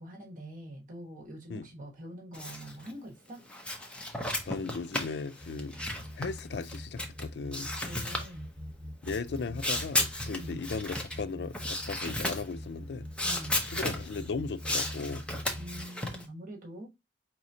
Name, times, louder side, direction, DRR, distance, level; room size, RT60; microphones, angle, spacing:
voice 1, 0.0-3.4 7.9-8.5 10.3-10.6 13.2-13.5 15.6-16.9, right 1 dB, 50° right, 1.2 m, -45 dB
sound 1, 2.3-2.9 3.3-7.2 7.5-8.3 9.0-11.2 11.5-12.5 13.1-14.3 14.6-16.2, left 1 dB, 5° left, 0.8 m, -34 dB
voice 2, 4.5-5.8 6.2-7.7 9.0-13.1 13.7-15.3, left 4 dB, 70° left, 0.4 m, -37 dB
sound 2, 5.4-15.8, left 1 dB, 20° right, 1.9 m, -43 dB
4.8 x 3.1 x 2.7 m
head